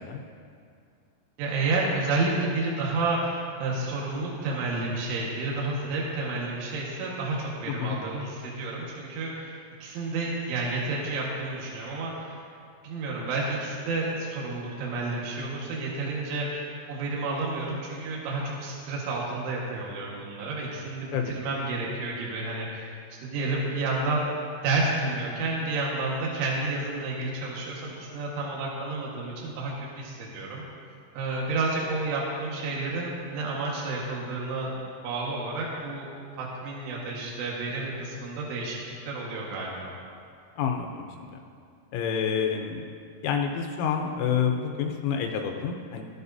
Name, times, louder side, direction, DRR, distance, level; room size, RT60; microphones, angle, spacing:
voice 1, 1.4-9.5 9.8-12.4 12.8-22.9 23.2-24.2 24.6-30.6 31.2-34.7 35.0-36.1 36.4-38.8 39.1-39.9, right 3 dB, 70° right, -4 dB, 3.9 m, -30 dB
voice 2, 7.7-8.0 21.1-21.4 40.6-41.4 41.9-42.8 43.2-46.0, left 7 dB, 80° left, 3 dB, 3.2 m, -28 dB
19.0 x 14.5 x 2.7 m, 2.3 s
omnidirectional pair, 5.9 m